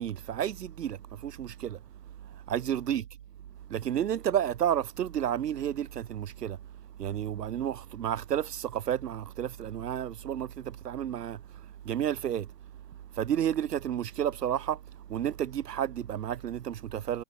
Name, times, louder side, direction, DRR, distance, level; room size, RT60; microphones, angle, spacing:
voice 1, 0.0-1.8 2.5-3.0 3.7-6.6 7.0-12.5 13.1-14.8 15.1-17.2, right 10 dB, 90° right, 4.1 m, -31 dB
hypercardioid pair, 145°, 46 cm